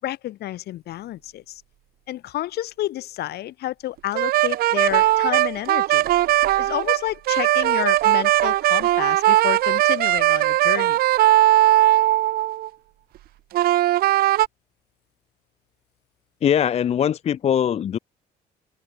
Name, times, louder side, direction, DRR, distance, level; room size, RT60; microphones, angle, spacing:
voice 1, 0.0-1.6 2.1-6.1 6.6-11.0, left 14 dB, 70° left, 7.1 m, -30 dB
sound 1, 4.1-12.7 13.5-14.5, right 15 dB, 65° right, 0.6 m, -19 dB
voice 2, 16.4-18.0, left 9 dB, 40° left, 0.5 m, -21 dB
open air
cardioid pair, 110°, 17 cm